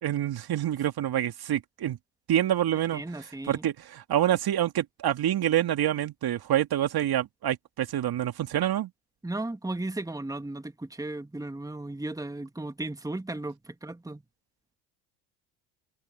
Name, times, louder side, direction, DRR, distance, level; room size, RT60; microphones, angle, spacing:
voice 1, 0.0-2.0 2.3-8.9, right 11 dB, 50° right, 2.4 m, -27 dB
voice 2, 2.9-3.6 9.2-14.2, right 2 dB, 5° right, 2.3 m, -35 dB
hypercardioid pair, 65°, 49 cm